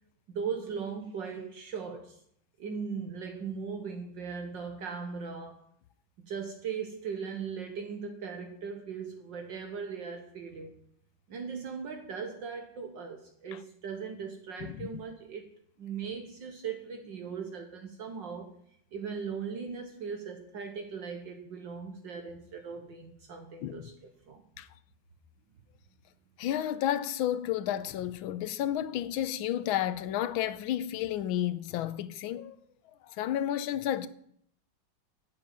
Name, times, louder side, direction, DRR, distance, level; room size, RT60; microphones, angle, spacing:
voice 1, 0.3-2.2 2.6-5.6 6.2-10.7 11.3-15.5 15.8-18.5 18.9-24.4, right 6 dB, 65° right, 1.8 m, -39 dB
voice 2, 26.4-32.6 33.1-34.1, left 11 dB, 80° left, 1.5 m, -31 dB
11.0 x 7.2 x 9.1 m
omnidirectional pair, 2.3 m